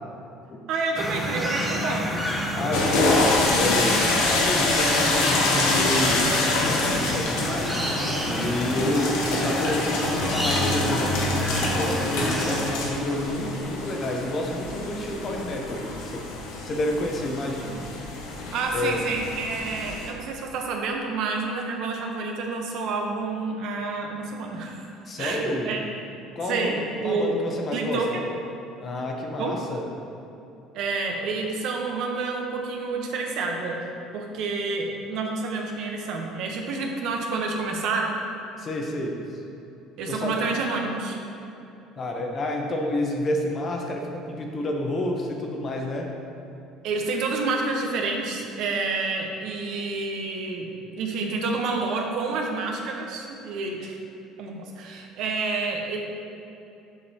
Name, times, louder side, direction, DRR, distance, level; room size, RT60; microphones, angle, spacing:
voice 1, 0.7-2.1 18.5-24.9 25.2-25.8 26.5-27.3 27.7-28.2 29.3-29.6 30.7-33.9 34.1-38.2 40.0-41.2 46.8-50.7 51.0-54.0 54.4-56.0, right 3 dB, 60° right, 1 dB, 0.8 m, -29 dB
sound 1, 0.9-12.6, equal, ahead, 0.7 m, -29 dB
voice 2, 2.5-7.8 8.2-16.2 16.6-17.8 18.7-19.0 25.1-25.7 26.4-26.7 27.0-28.0 28.8-29.9 38.6-39.2 40.1-40.3 42.0-46.1, left 1 dB, 30° left, 1 dB, 0.7 m, -29 dB
sound 2, 2.7-20.1, left 2 dB, 85° left, 1.1 m, -26 dB
7.0 x 6.5 x 2.8 m, 2.8 s
cardioid pair, 150°, 0 cm